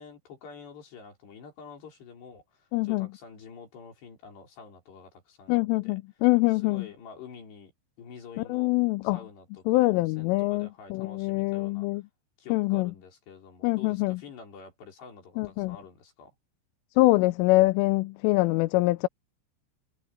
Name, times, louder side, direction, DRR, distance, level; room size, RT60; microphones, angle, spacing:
voice 1, 0.0-6.0 6.5-7.7 8.0-8.7 9.0-11.9 12.4-16.3, left 5 dB, 60° left, 7.0 m, -48 dB
voice 2, 2.7-3.1 5.5-6.9 8.5-9.2 9.7-12.0 12.5-12.9 13.6-14.2 15.4-15.8 17.0-19.1, left 21 dB, 85° left, 3.2 m, -24 dB
omnidirectional pair, 5.7 m